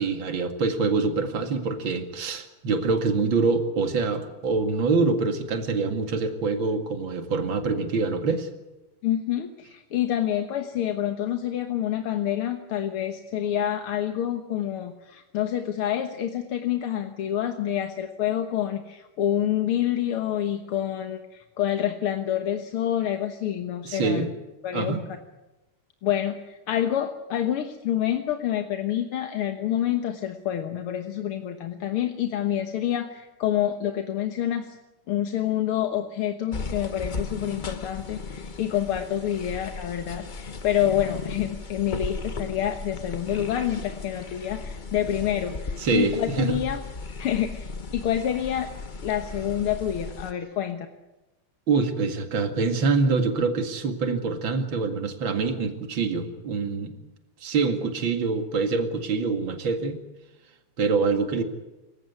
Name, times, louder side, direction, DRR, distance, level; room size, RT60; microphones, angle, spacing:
voice 1, 0.0-8.5 23.8-24.3 24.7-25.0 45.8-46.6 51.7-56.9 57.4-60.0 60.8-61.4, right 4 dB, 65° right, 7 dB, 2.9 m, -25 dB
voice 2, 9.0-24.3 24.6-25.0 26.0-34.8 35.1-46.8 47.2-48.7 49.0-50.9, left 11 dB, 80° left, 6 dB, 2.2 m, -27 dB
sound 1, 36.5-50.3, left 4 dB, 35° left, 0.8 m, -36 dB
26.5 x 15.5 x 9.6 m, 1.0 s
omnidirectional pair, 2.4 m